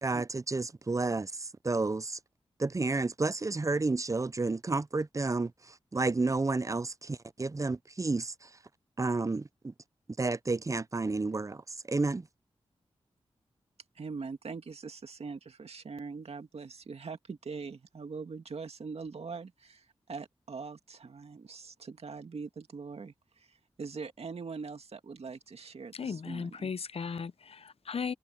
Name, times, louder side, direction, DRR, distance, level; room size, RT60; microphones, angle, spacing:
voice 1, 0.0-2.2 2.6-8.5 9.0-9.7 10.2-11.6 11.9-12.3, right 3 dB, 30° right, 0.6 m, -31 dB
voice 2, 14.0-26.7, right 4 dB, 65° right, 2.1 m, -42 dB
voice 3, 25.9-28.1, left 6 dB, 60° left, 0.7 m, -36 dB
cardioid pair, 45°, 11 cm